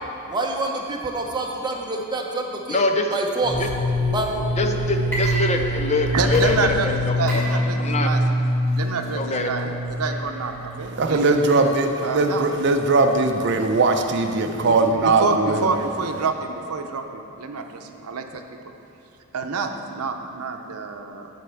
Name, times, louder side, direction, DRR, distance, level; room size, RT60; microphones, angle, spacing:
voice 1, 0.3-2.8 3.1-3.6 4.1-4.3, right 2 dB, 20° right, 0 dB, 0.8 m, -26 dB
voice 2, 2.7-3.1 3.6-3.7 4.5-8.1 9.1-9.5, left 3 dB, 30° left, 4 dB, 0.5 m, -24 dB
sound 1, 3.4-11.1, equal, 70° left, 1.6 m, -25 dB
Water / Liquid, 5.0-6.0 6.3-14.6, right 1 dB, 10° left, 2.0 m, -37 dB
voice 3, 6.1-6.9 7.2-8.2 8.7-11.2 12.0-12.5 14.7-14.8 15.0-18.2 19.3-21.3, right 4 dB, 90° right, 5 dB, 0.7 m, -27 dB
voice 4, 10.8-15.7, right 3 dB, 50° right, 6 dB, 0.5 m, -20 dB
9.7 x 4.3 x 7.0 m, 2.7 s
head